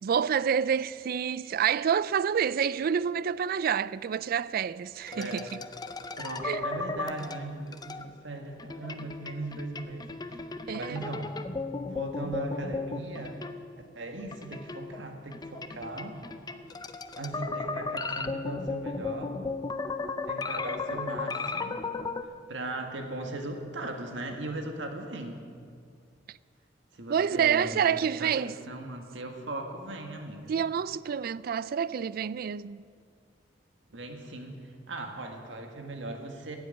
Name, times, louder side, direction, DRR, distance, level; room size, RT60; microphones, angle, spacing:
voice 1, 0.0-5.5 6.4-6.6 10.7-11.0 26.3-26.4 27.1-28.6 30.5-32.8, right 7 dB, 55° right, 0.3 m, -28 dB
sound 1, 5.1-8.1 8.6-13.9 14.3-22.2, left 3 dB, 20° left, 0.6 m, -35 dB
voice 2, 5.1-5.5 6.2-10.4 10.7-11.4 11.8-13.4 14.0-16.2 17.2-19.4 20.2-21.8 22.5-25.4 26.9-30.5 33.9-36.6, right 2 dB, 80° right, 1.8 m, -38 dB
15.0 x 8.1 x 8.9 m
head